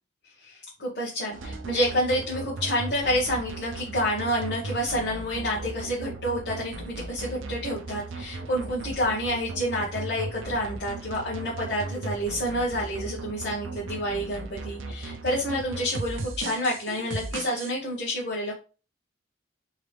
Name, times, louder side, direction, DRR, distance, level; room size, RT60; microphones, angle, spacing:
voice 1, 0.4-18.5, equal, 55° left, -7 dB, 1.5 m, -29 dB
sound 1, 1.3-17.7, right 3 dB, 80° right, 0.6 m, -37 dB
3.6 x 3.2 x 3.3 m, 0.34 s
head